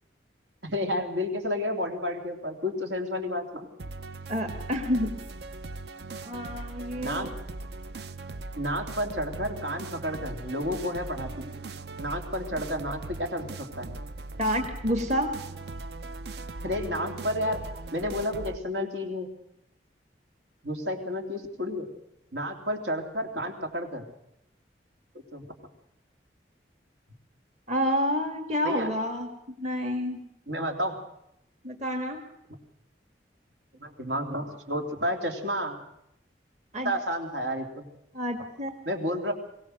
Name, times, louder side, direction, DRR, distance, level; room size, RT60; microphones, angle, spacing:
voice 1, 0.6-3.7 7.0-7.3 8.6-11.5 12.0-13.9 16.6-17.6 17.9-19.3 20.6-21.9 22.3-24.0 25.3-25.5 28.6-28.9 30.5-31.0 33.8-35.8 36.8-37.8 38.8-39.3, equal, 85° right, 4 dB, 3.3 m, -31 dB
sound 1, 3.8-18.6, right 3 dB, 65° right, 0.7 m, -39 dB
voice 2, 4.3-5.1 6.2-7.3 14.4-15.3 27.7-29.3 29.6-30.2 31.6-32.2 36.7-36.9 38.1-38.8, equal, 40° right, 4 dB, 1.7 m, -28 dB
22.5 x 17.5 x 6.5 m, 0.82 s
head